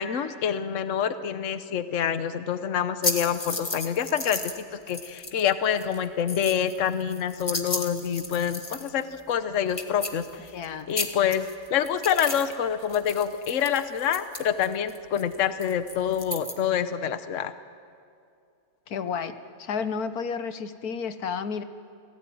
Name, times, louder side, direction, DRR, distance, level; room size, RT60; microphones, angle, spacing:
voice 1, 0.0-10.5 10.9-17.5, left 8 dB, 60° left, 11 dB, 1.3 m, -27 dB
sound 1, 3.0-4.6 4.9-5.5 5.8-9.0 9.3-9.4 9.7-10.7 10.9-12.6 12.8-16.5, left 2 dB, 20° left, 1.6 m, -33 dB
voice 2, 10.5-10.9 18.9-21.6, left 6 dB, 85° left, 10 dB, 1.6 m, -31 dB
28.0 x 18.0 x 9.4 m, 2.4 s
omnidirectional pair, 1.6 m